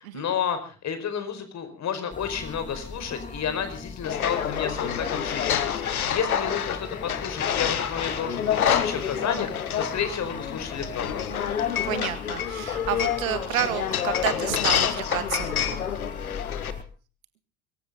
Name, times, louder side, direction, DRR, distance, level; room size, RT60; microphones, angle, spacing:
voice 1, 0.0-11.4, left 7 dB, 40° left, 10 dB, 4.9 m, -31 dB
sound 1, 2.1-16.8, left 4 dB, 15° left, 2.0 m, -39 dB
sound 2, 4.0-16.7, left 9 dB, 80° left, 1.6 m, -28 dB
voice 2, 11.8-15.9, right 12 dB, 70° right, 12 dB, 2.0 m, -30 dB
24.0 x 14.5 x 3.8 m, 0.37 s
figure-of-eight pair, 65°, 43 cm